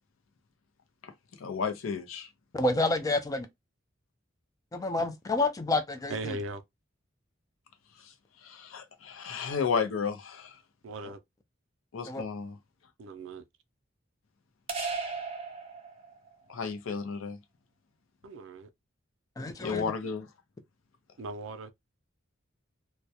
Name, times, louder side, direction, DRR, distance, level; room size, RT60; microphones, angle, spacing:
voice 1, 1.4-2.3 8.4-10.5 11.9-12.6 16.5-17.4 19.6-20.3, left 5 dB, 90° left, 0.5 m, -33 dB
voice 2, 2.5-3.5 4.7-6.4 12.0-12.2 19.4-19.9, left 2 dB, 15° left, 0.3 m, -29 dB
voice 3, 6.1-6.6 10.8-11.2 13.0-13.4 18.2-18.7 21.2-21.7, right 2 dB, 75° right, 0.4 m, -38 dB
sound 1, 14.7-16.4, right 4 dB, 30° right, 0.6 m, -36 dB
2.2 x 2.0 x 2.7 m
head